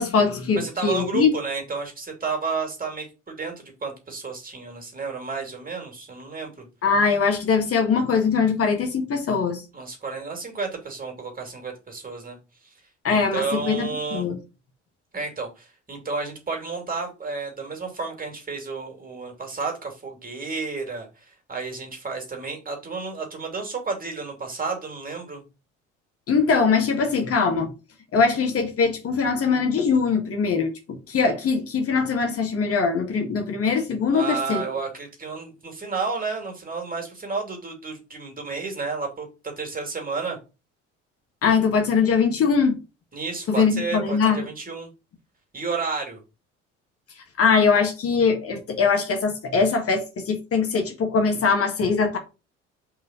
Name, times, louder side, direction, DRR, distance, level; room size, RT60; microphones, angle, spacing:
voice 1, 0.0-1.3 6.8-9.6 13.0-14.4 26.3-27.7 28.1-30.7 31.1-34.6 41.4-42.8 43.5-44.5 47.4-52.2, left 5 dB, 40° left, 1.6 m, -22 dB
voice 2, 0.6-6.7 9.7-12.4 13.1-14.3 15.1-25.4 34.1-39.3 39.6-40.4 43.1-44.9 45.5-46.2, right 4 dB, 25° right, 2.7 m, -31 dB
5.4 x 3.8 x 5.9 m
figure-of-eight pair, 55°, 36 cm